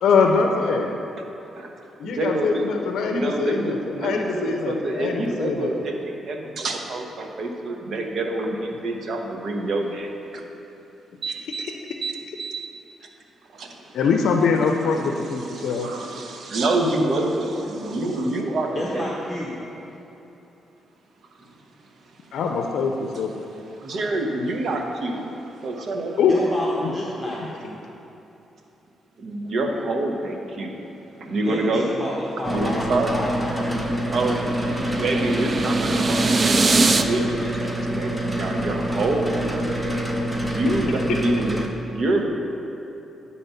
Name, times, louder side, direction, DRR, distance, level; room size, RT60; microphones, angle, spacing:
voice 1, 0.0-0.9 2.0-5.7 11.3-11.7 13.9-15.9 22.3-23.3 26.2-26.3 26.8-26.9, left 5 dB, 80° left, 3 dB, 0.5 m, -23 dB
voice 2, 2.0-2.7 3.1-10.1 11.2-11.6 12.0-12.7 13.6-13.7 15.2-19.1 23.8-25.3 25.6-26.1 29.2-30.7 31.3-31.9 32.5-33.1 34.1-40.1 40.4-41.6 41.9-42.3, right 2 dB, 60° right, 2 dB, 1.0 m, -27 dB
voice 3, 18.7-19.5 26.3-27.8 31.4-32.1 32.4-33.8, left 1 dB, 10° left, -5 dB, 1.2 m, -30 dB
sound 1, 32.4-41.7, equal, 10° right, 0.8 m, -27 dB
sound 2, 33.0-37.0, right 3 dB, 40° right, 0.4 m, -23 dB
10.0 x 4.2 x 5.6 m, 3.0 s
cardioid pair, 85°, 0 cm